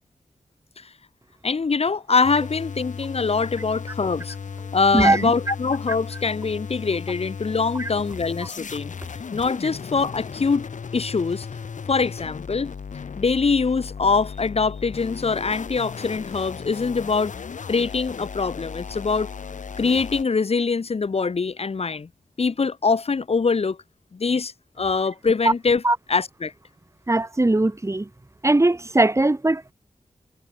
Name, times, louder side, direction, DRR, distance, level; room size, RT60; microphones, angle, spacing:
voice 1, 1.4-4.3 4.7-8.9 9.3-10.7 10.9-11.5 11.9-12.7 13.2-17.3 17.7-19.3 19.8-22.1 22.4-23.8 24.1-25.8 26.1-26.5, left 4 dB, 50° left, 1.1 m, -23 dB
sound 1, 2.2-20.2, left 6 dB, 80° left, 1.8 m, -36 dB
voice 2, 4.9-5.3 7.8-7.9 25.8-26.0 27.1-28.1 28.4-29.7, right 2 dB, 20° right, 2.0 m, -20 dB
wide cardioid pair, 85°, 13 cm